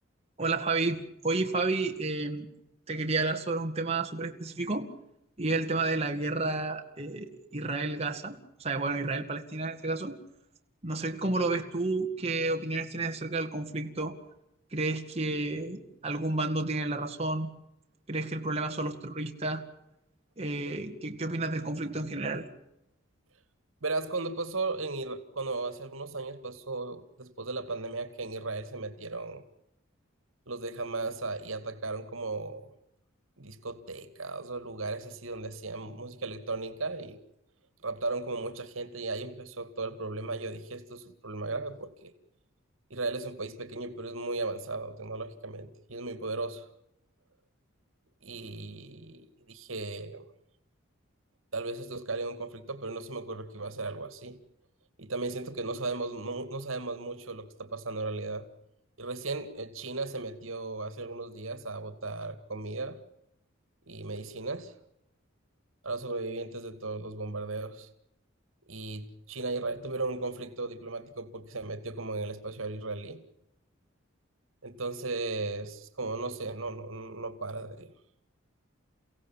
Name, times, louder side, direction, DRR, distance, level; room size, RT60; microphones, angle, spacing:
voice 1, 0.4-2.5 2.9-4.9 5.4-10.1 10.8-14.1 14.7-17.5 18.1-19.6 20.4-22.4, right 3 dB, 30° right, 2.2 m, -31 dB
voice 2, 23.8-29.4 30.5-32.7 33.4-37.2 37.8-42.1 42.9-46.7 48.2-50.3 51.5-54.4 55.0-58.5 59.0-63.0 63.9-64.7 65.8-67.9 68.7-73.2 74.6-77.9, right 3 dB, 80° right, 2.3 m, -36 dB
29.5 x 16.5 x 7.4 m
head